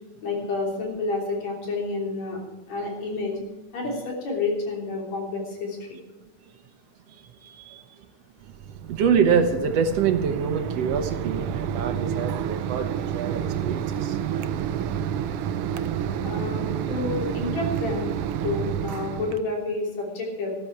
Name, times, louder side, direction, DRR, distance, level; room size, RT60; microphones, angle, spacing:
voice 1, 0.2-2.4 2.7-3.4 3.7-5.8 16.2-18.1 18.4-20.5, left 3 dB, 65° left, -1 dB, 4.5 m, -29 dB
voice 2, 7.4-7.9 8.9-14.2, right 6 dB, 65° right, 8 dB, 1.8 m, -25 dB
Mechanisms, 8.4-19.4, right 9 dB, 85° right, 1.3 m, -29 dB
13.0 x 13.0 x 4.6 m, 1.2 s
omnidirectional pair, 3.4 m